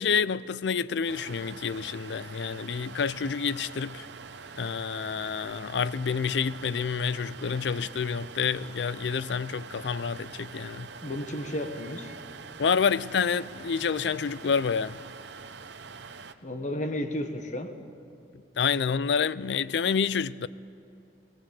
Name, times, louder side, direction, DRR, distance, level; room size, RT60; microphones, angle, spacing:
voice 1, 0.0-4.1 4.6-10.9 12.6-15.0 18.6-20.5, left 6 dB, 70° left, 0.4 m, -28 dB
sound 1, 1.1-16.3, right 5 dB, 70° right, 0.8 m, -44 dB
voice 2, 11.0-12.1 16.4-17.8, left 1 dB, 45° left, 1.4 m, -33 dB
20.0 x 18.0 x 7.7 m
head